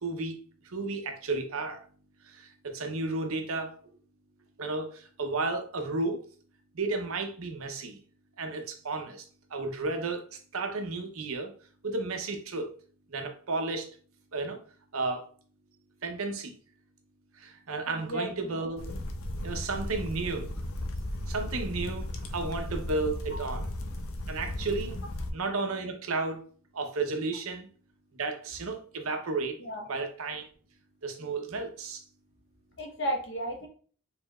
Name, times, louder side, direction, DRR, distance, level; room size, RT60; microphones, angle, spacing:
voice 1, 0.0-0.4 0.7-1.8 2.6-3.7 4.6-4.9 5.2-6.2 6.8-8.0 8.4-9.2 9.5-10.2 10.5-11.5 11.8-12.7 13.1-13.9 14.3-14.6 14.9-15.2 16.0-16.5 17.4-19.0 19.4-20.5 21.3-22.1 22.3-23.6 24.3-24.9 25.3-26.4 26.7-27.7 28.2-29.6 29.9-30.5 31.0-32.0, right 3 dB, 85° right, 0.8 m, -32 dB
voice 2, 17.9-18.6 23.3-23.5 29.6-29.9 32.8-33.7, equal, 55° left, 1.0 m, -34 dB
sound 1, 18.8-25.3, left 1 dB, 80° left, 0.6 m, -35 dB
4.6 x 3.4 x 2.3 m
head